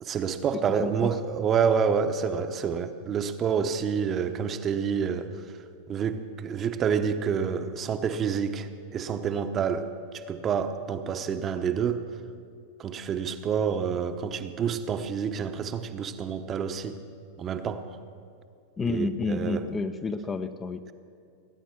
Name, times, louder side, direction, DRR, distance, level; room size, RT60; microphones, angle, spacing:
voice 1, 0.0-5.3 5.9-12.1 12.8-17.0 17.4-17.8 18.8-19.7, right 7 dB, 30° right, 8 dB, 0.9 m, -28 dB
voice 2, 0.8-1.1 18.8-20.8, left 3 dB, 20° left, 10 dB, 0.7 m, -30 dB
19.5 x 9.2 x 6.1 m, 2.4 s
hypercardioid pair, 105°, 0 cm